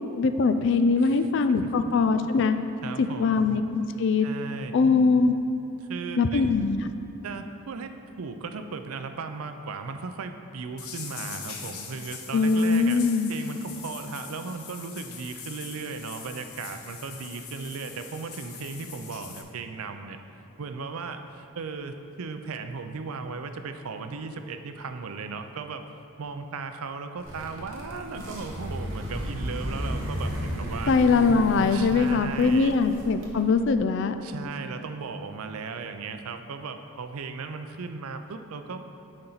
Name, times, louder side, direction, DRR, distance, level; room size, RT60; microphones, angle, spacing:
voice 1, 0.2-2.6 3.0-4.3 4.7-5.4 6.2-6.8 12.3-13.3 30.9-34.1, left 4 dB, 55° left, 9 dB, 0.3 m, -22 dB
voice 2, 1.0-1.3 2.8-3.4 4.2-4.8 5.8-6.5 7.2-13.0 13.3-20.2 20.6-25.9 26.2-30.9 31.7-32.8 34.2-38.9, right 4 dB, 80° right, 8 dB, 0.5 m, -36 dB
sound 1, 10.8-19.4, left 7 dB, 85° left, 0.8 m, -42 dB
sound 2, 27.2-33.7, equal, 60° right, 1.3 m, -34 dB
10.5 x 4.4 x 4.0 m, 2.8 s
head